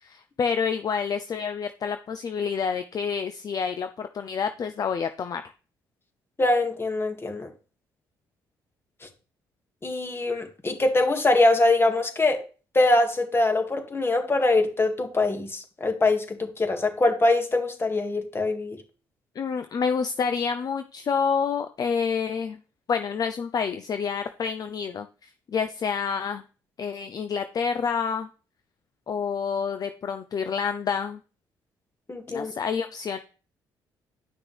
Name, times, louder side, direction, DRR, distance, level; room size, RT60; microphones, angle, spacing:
voice 1, 0.0-5.4 19.4-22.6 22.9-26.4 26.8-28.3 29.1-31.2 32.3-33.2, left 6 dB, 50° left, 9 dB, 0.6 m, -28 dB
voice 2, 6.4-7.5 9.8-12.4 12.7-18.8 32.1-32.5, left 2 dB, 30° left, 5 dB, 2.1 m, -23 dB
10.5 x 5.9 x 3.4 m, 0.37 s
supercardioid pair, 65°, 9 cm